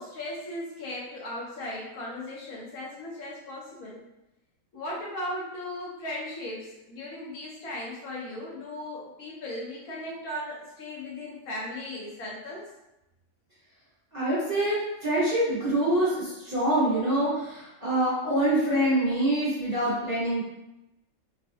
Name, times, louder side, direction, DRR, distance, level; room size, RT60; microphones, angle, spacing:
voice 1, 0.0-4.0 4.7-12.6, left 1 dB, 85° left, -5 dB, 1.5 m, -37 dB
voice 2, 14.1-20.4, right 1 dB, 10° right, -12 dB, 1.2 m, -25 dB
3.6 x 2.3 x 2.7 m, 0.91 s
omnidirectional pair, 1.5 m